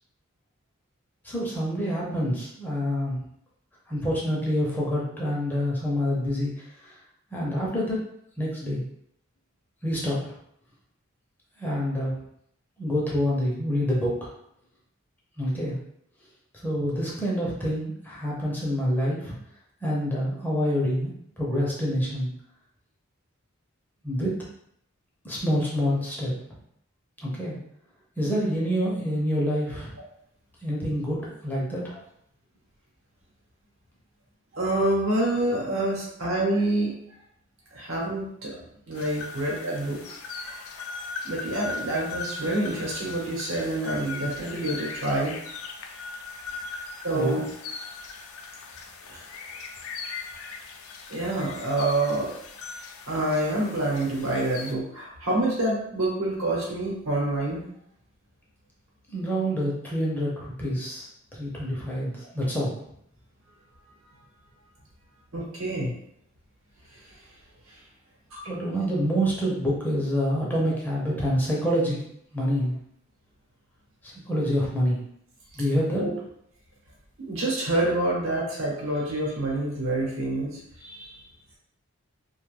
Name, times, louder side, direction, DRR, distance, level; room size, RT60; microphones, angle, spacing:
voice 1, 1.2-3.2 3.9-7.0 7.3-8.0 8.4-8.8 9.8-10.3 11.6-12.1 12.8-14.3 15.4-15.8 16.5-19.4 19.8-22.3 24.0-24.4 25.2-26.3 27.2-27.6 28.2-29.9 30.6-31.9 47.1-47.4 59.1-62.7 68.5-72.0 72.3-72.7 74.0-75.0 75.5-76.1, equal, 10° left, -5 dB, 0.6 m, -27 dB
voice 2, 34.5-36.9 37.7-38.6 38.9-40.0 40.4-40.6 41.2-45.4 47.0-47.5 49.1-49.2 51.1-52.3 53.1-57.6 65.3-65.9 66.9-67.0 68.3-68.5 76.0-76.1 77.2-81.2, right 1 dB, 70° right, -3 dB, 1.0 m, -27 dB
sound 1, 38.9-54.7, left 4 dB, 85° left, 0.4 m, -39 dB
2.7 x 2.3 x 3.2 m, 0.72 s
head